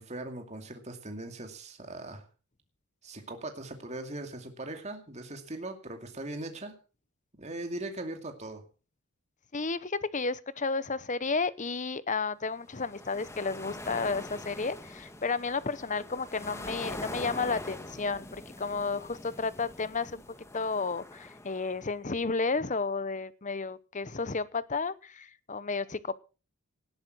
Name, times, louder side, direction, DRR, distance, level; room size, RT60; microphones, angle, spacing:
voice 1, 0.0-2.3 3.0-6.8 7.4-8.6, right 2 dB, 30° right, 5 dB, 2.5 m, -40 dB
voice 2, 9.5-20.2 20.5-26.2, left 4 dB, 35° left, 17 dB, 0.9 m, -32 dB
sound 1, 12.6-21.8, left 1 dB, 10° left, 1.5 m, -44 dB
19.0 x 8.8 x 6.2 m, 0.36 s
head